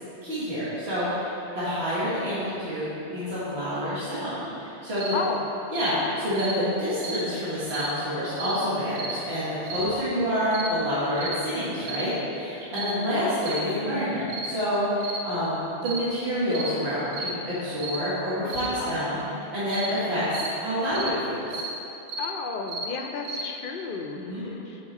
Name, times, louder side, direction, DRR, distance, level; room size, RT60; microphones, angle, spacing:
voice 1, 0.2-5.1 5.7-19.2 19.5-21.5 24.1-24.5, equal, 70° right, -11 dB, 1.8 m, -28 dB
sound 1, 5.0-5.2 5.7-5.9 6.4-6.6 7.0-7.2 7.7-7.9 8.4-8.6 9.0-9.2 9.7-9.9 10.5-10.7 11.2-11.4 11.8-12.1 12.7-13.0 13.4-13.7 14.3-14.5 15.0-15.2 15.8-16.0 16.5-16.7 17.1-17.4 17.8-18.0 18.5-18.7 19.7-19.9 20.3-20.5 20.9-21.1 21.5-21.7 22.1-22.3 22.7-22.9 23.2-23.5, right 2 dB, 90° right, 1.0 m, -33 dB
voice 2, 5.1-5.5 12.7-13.2 18.8-19.0 22.2-24.8, left 4 dB, 60° left, 3 dB, 0.7 m, -33 dB
7.2 x 4.7 x 4.1 m, 2.9 s
omnidirectional pair, 1.1 m